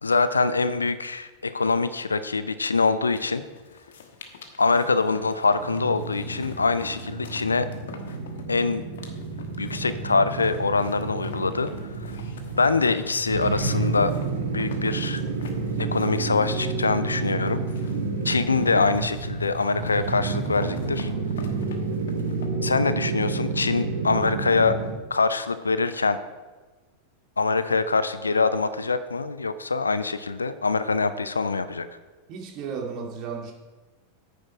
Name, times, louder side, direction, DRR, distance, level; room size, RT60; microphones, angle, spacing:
voice 1, 0.0-3.4 4.6-7.7 8.5-8.8 9.6-11.7 12.6-14.1 14.5-15.2 15.8-17.6 18.2-21.1 22.6-24.8 25.1-26.2 27.4-31.9, left 4 dB, 75° left, 13 dB, 0.6 m, -24 dB
sound 1, 3.1-22.5, left 5 dB, 60° left, 1.3 m, -46 dB
sound 2, 5.6-25.0, right 3 dB, 60° right, 1.3 m, -30 dB
voice 2, 32.3-33.5, right 5 dB, 40° right, 1 dB, 2.1 m, -34 dB
10.0 x 9.3 x 4.7 m, 1.2 s
figure-of-eight pair, 90°, 0 cm